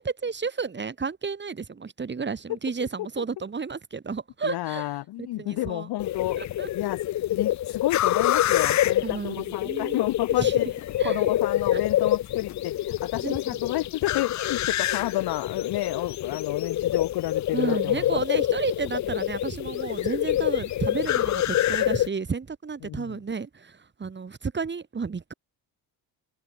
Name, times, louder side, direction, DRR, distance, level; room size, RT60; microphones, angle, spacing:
voice 1, 0.0-4.9 5.2-5.9 6.4-6.7 9.0-10.0 10.4-10.7 11.0-11.3 11.7-11.8 13.2-13.4 17.5-25.3, right 5 dB, 25° right, 2.4 m, -32 dB
voice 2, 4.4-6.4 6.7-7.0 7.3-18.2 22.8-23.2, left 16 dB, 70° left, 1.2 m, -31 dB
sound 1, 6.0-22.1, left 13 dB, 45° left, 0.6 m, -26 dB
cardioid pair, 100°, 40 cm